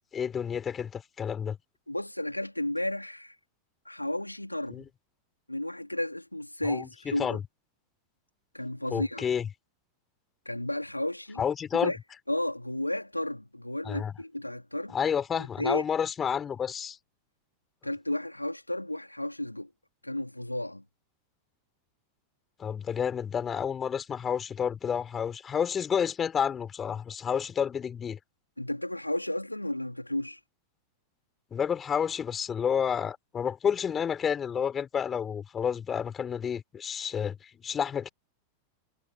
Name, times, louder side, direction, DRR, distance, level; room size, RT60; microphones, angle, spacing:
voice 1, 0.1-1.6 4.7-4.8 6.6-7.4 8.9-9.5 11.4-11.9 13.8-14.1 14.9-17.0 22.6-28.2 31.5-38.1, left 7 dB, 20° left, 4.5 m, -30 dB
voice 2, 1.9-3.3 3.8-4.8 5.5-7.4 8.5-9.2 10.4-11.4 11.7-12.0 12.3-14.9 15.3-15.8 17.8-19.7 20.0-20.8 28.6-30.4, left 1 dB, 85° left, 3.2 m, -33 dB
figure-of-eight pair, 90°, 0 cm